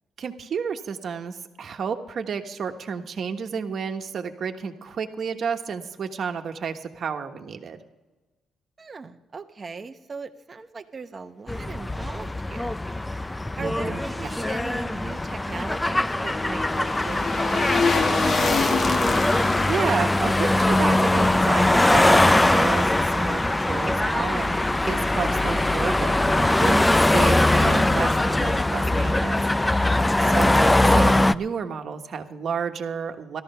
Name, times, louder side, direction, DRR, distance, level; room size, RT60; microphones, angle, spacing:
voice 1, 0.2-7.8 13.5-14.3 19.4-29.4 29.7-30.0 30.2-33.4, right 6 dB, 55° right, 6 dB, 1.3 m, -31 dB
voice 2, 8.8-12.8 13.6-18.8 29.8-30.4, right 4 dB, 35° right, 6 dB, 0.9 m, -39 dB
sound 1, 11.5-31.3, left 1 dB, 15° left, 0.4 m, -21 dB
sound 2, 15.0-22.2 22.5-22.6, left 4 dB, 45° left, 1.3 m, -28 dB
14.0 x 13.0 x 5.6 m, 1.2 s
cardioid pair, 90°, 0 cm